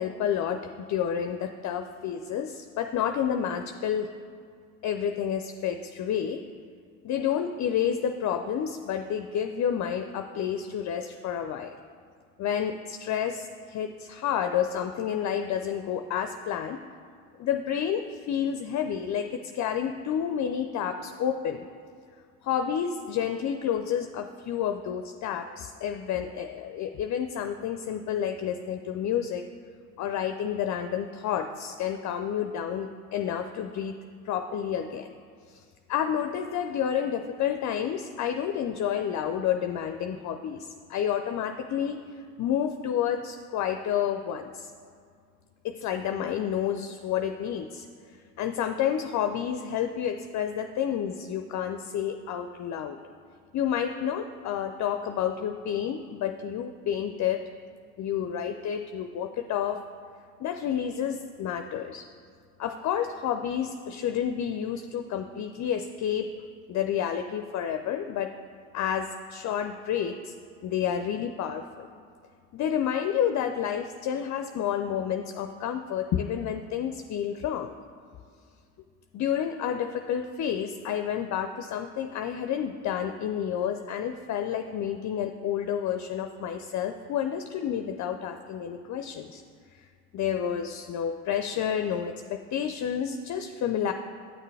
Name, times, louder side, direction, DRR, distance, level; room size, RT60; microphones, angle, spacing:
voice 1, 0.0-4.1 4.8-6.4 7.0-11.7 12.4-16.8 17.4-21.7 22.4-29.4 30.0-33.9 34.2-35.1 35.5-35.6 35.9-42.0 42.4-44.7 45.6-53.0 53.5-57.4 58.0-59.8 60.4-62.0 62.6-66.3 66.7-68.3 68.7-70.3 70.6-71.9 72.5-77.7 79.1-89.4 89.7-89.8 90.1-93.9, left 9 dB, 50° left, 7 dB, 0.5 m, -30 dB
8.7 x 6.6 x 3.3 m, 2.2 s
supercardioid pair, 65°, 38 cm